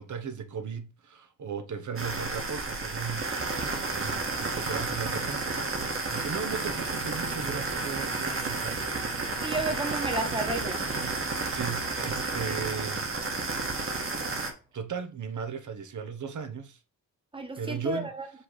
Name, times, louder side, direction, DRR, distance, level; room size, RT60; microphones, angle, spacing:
voice 1, 0.0-9.1 11.1-13.1 14.7-16.8 17.6-18.1, right 6 dB, 65° right, 0.9 m, -37 dB
sound 1, 2.0-14.5, right 3 dB, 40° right, 1.4 m, -31 dB
voice 2, 9.4-10.8 17.3-18.3, right 2 dB, 15° right, 1.3 m, -32 dB
5.6 x 3.2 x 5.6 m
wide cardioid pair, 160°, 32 cm